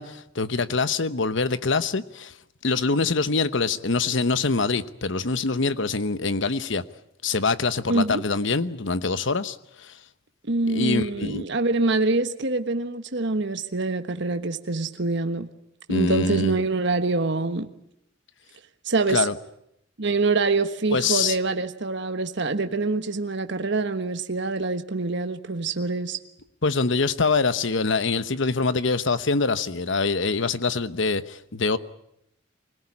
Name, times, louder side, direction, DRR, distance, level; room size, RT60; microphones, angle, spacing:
voice 1, 0.0-2.3 2.6-6.8 7.2-9.9 10.7-11.4 15.9-16.6 19.1-19.4 20.9-21.4 26.6-31.8, left 4 dB, 65° left, 1.0 m, -24 dB
voice 2, 7.9-8.2 10.5-15.5 15.9-17.7 18.8-19.3 20.0-26.2, right 3 dB, 60° right, 1.3 m, -25 dB
25.0 x 18.0 x 9.9 m
head